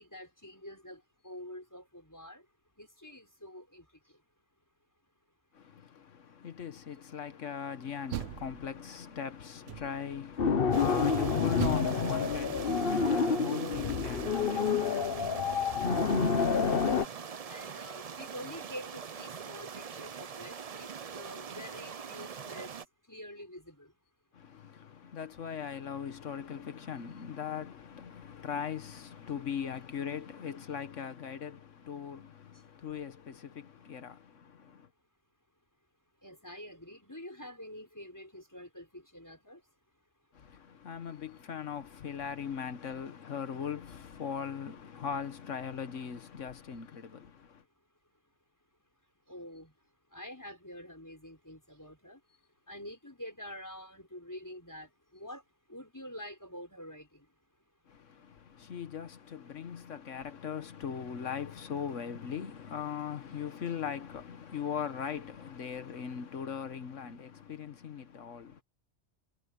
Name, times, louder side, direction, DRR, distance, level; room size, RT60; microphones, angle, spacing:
voice 1, 0.0-2.5 2.8-4.2 17.4-24.0 28.3-28.4 32.5-32.6 36.2-39.7 49.3-57.3 58.4-58.5, equal, 15° left, 5.9 m, -47 dB
voice 2, 5.5-15.3 24.3-34.9 40.3-47.6 57.9-68.6, left 7 dB, 90° left, 1.5 m, -40 dB
Door, 7.8-9.1 9.6-10.2 11.6-13.5, right 12 dB, 65° right, 0.9 m, -40 dB
sound 1, 10.4-17.1, left 5 dB, 50° left, 1.3 m, -28 dB
strong river gurgling, 10.7-22.8, right 6 dB, 40° right, 0.6 m, -43 dB
omnidirectional pair, 1.2 m